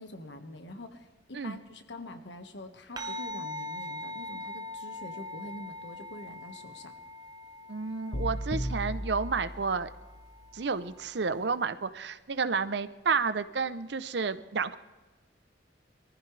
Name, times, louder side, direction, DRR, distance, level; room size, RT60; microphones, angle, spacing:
voice 1, 0.0-6.9, left 1 dB, 75° left, 7 dB, 1.5 m, -45 dB
sound 1, 3.0-11.7, left 1 dB, 20° right, 0.8 m, -42 dB
voice 2, 7.7-9.9 10.5-14.8, right 5 dB, 65° right, 12 dB, 0.7 m, -31 dB
sound 2, 8.1-10.2, equal, 45° left, 1.2 m, -35 dB
23.5 x 14.5 x 3.3 m, 1.2 s
head